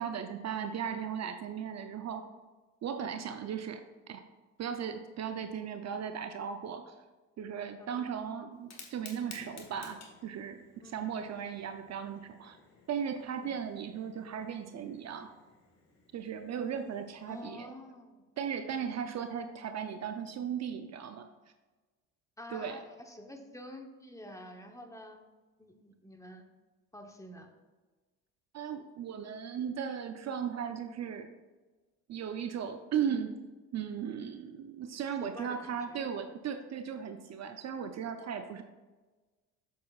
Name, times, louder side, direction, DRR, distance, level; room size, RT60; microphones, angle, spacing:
voice 1, 0.0-2.3 2.8-4.2 4.6-6.9 7.4-12.6 12.9-15.3 16.1-17.7 18.4-21.3 22.5-22.8 28.5-31.3 32.1-33.4 33.7-38.6, right 7 dB, 45° right, 7 dB, 0.6 m, -37 dB
voice 2, 7.8-8.2 10.8-11.1 11.4-11.7 13.4-13.6 17.3-18.2 22.4-25.2 25.6-26.4 26.9-27.5 35.2-36.0, left 1 dB, 10° left, 3 dB, 0.9 m, -48 dB
Fire, 8.5-17.4, left 4 dB, 45° left, 1.5 m, -55 dB
7.3 x 7.3 x 2.4 m, 1.2 s
supercardioid pair, 80°, 38 cm